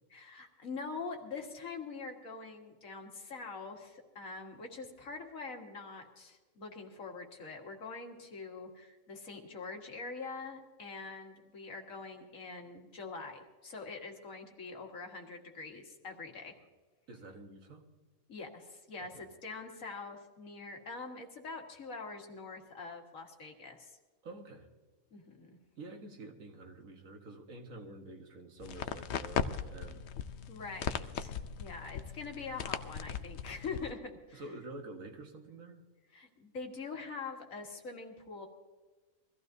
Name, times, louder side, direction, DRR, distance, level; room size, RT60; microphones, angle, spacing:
voice 1, 0.1-16.5 18.3-23.9 25.1-25.6 30.5-34.4 36.1-38.5, left 4 dB, 85° left, 2 dB, 2.0 m, -44 dB
voice 2, 17.1-17.8 19.0-19.2 24.2-24.7 25.8-30.1 34.3-35.8, right 2 dB, 90° right, 3 dB, 1.8 m, -48 dB
sound 1, 28.6-33.9, left 7 dB, 65° left, 0.8 m, -38 dB
22.5 x 15.0 x 2.7 m, 1.3 s
omnidirectional pair, 1.4 m